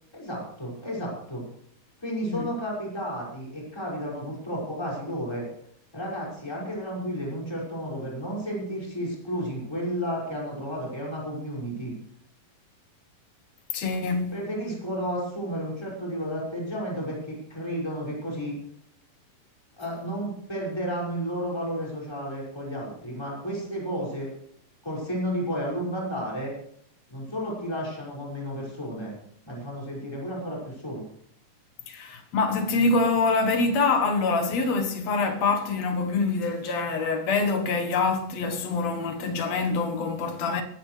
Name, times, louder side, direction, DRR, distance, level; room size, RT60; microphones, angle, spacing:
voice 1, 0.1-1.4 2.0-5.5 5.9-11.9 14.3-18.5 19.8-24.3 24.8-26.6 27.1-29.2 29.5-31.0, equal, 5° left, 5.9 m, -32 dB
voice 2, 13.7-14.3 31.9-40.6, left 3 dB, 60° left, 2.2 m, -25 dB
23.5 x 13.5 x 3.3 m
omnidirectional pair, 3.9 m